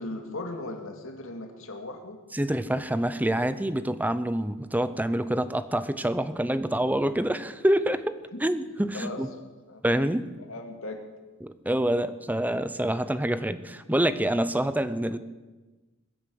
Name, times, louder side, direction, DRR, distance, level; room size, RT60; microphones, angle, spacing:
voice 1, 0.0-2.2 8.3-8.4 8.9-9.2 9.7-9.8 10.4-11.0 12.8-13.1, left 2 dB, 65° left, 4 dB, 2.3 m, -38 dB
voice 2, 2.3-8.1 8.4-9.3 9.8-10.2 11.4-15.2, right 1 dB, 10° right, 12 dB, 0.7 m, -26 dB
21.0 x 8.6 x 7.9 m, 1.2 s
head